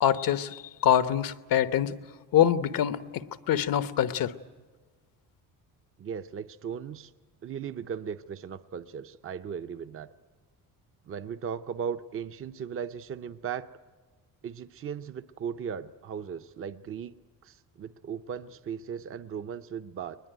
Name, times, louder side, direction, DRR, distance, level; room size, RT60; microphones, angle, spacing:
voice 1, 0.0-2.0 2.3-4.3, left 10 dB, 70° left, 12 dB, 1.0 m, -25 dB
voice 2, 6.0-7.1 7.4-10.1 11.1-13.7 14.4-17.1 17.4-20.2, right 7 dB, 35° right, 10 dB, 0.7 m, -37 dB
22.0 x 20.5 x 9.1 m, 1.4 s
cardioid pair, 120°, 35 cm